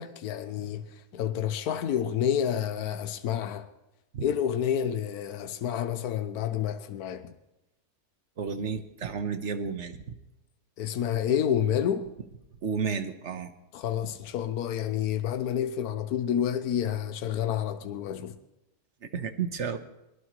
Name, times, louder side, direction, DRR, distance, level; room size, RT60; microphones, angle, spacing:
voice 1, 0.0-3.7 4.2-7.3 10.8-12.1 13.7-18.4, left 9 dB, 80° left, 1.3 m, -29 dB
voice 2, 8.4-10.0 12.6-13.5 19.1-19.8, right 6 dB, 50° right, 1.3 m, -32 dB
22.5 x 19.5 x 3.1 m
omnidirectional pair, 1.6 m